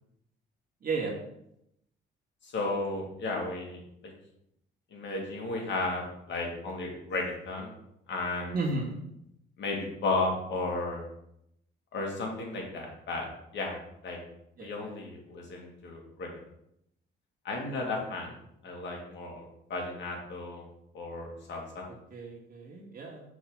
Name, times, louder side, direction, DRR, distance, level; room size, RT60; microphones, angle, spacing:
voice 1, 0.8-1.1 8.5-9.0 14.6-14.9 22.1-23.2, right 3 dB, 50° right, -2 dB, 1.7 m, -33 dB
voice 2, 2.4-4.1 4.9-7.7 8.1-8.6 9.6-11.0 11.9-13.3 13.5-14.2 14.6-16.3 17.4-18.3 18.6-20.7 20.9-21.8, left 2 dB, 65° left, 0 dB, 2.1 m, -34 dB
6.0 x 3.7 x 5.5 m, 0.78 s
cardioid pair, 90°, 20 cm